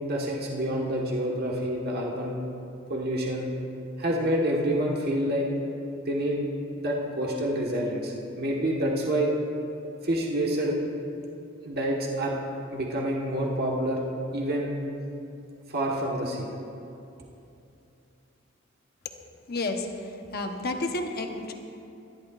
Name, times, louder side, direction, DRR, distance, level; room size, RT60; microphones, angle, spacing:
voice 1, 0.0-2.4 2.9-3.5 4.0-5.5 6.1-6.4 6.8-9.3 10.0-10.8 11.6-12.4 12.7-14.0 14.3-14.8 15.7-16.5, right 1 dB, 55° right, -2 dB, 1.4 m, -27 dB
voice 2, 19.5-21.5, left 2 dB, 50° left, 4 dB, 1.0 m, -31 dB
24.5 x 11.5 x 2.5 m, 2.7 s
head